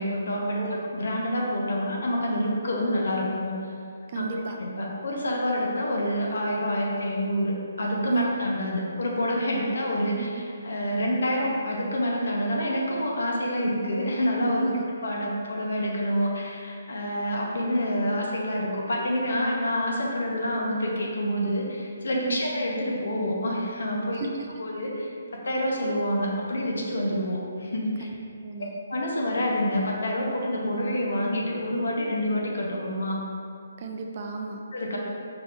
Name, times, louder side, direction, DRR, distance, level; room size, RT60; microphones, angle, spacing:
voice 1, 0.0-0.6 0.9-3.6 4.1-4.2 4.6-14.7 15.0-24.2 24.6-28.1 28.9-33.2 34.7-35.0, equal, 80° left, -1 dB, 0.8 m, -27 dB
voice 2, 4.1-4.6 8.1-8.3 10.2-10.3 14.6-14.9 22.2-22.5 24.1-24.3 28.0-28.2 28.4-28.7 33.8-34.6, right 4 dB, 40° right, 2 dB, 0.4 m, -33 dB
4.9 x 3.4 x 2.5 m, 2.4 s
hypercardioid pair, 160°, 0 cm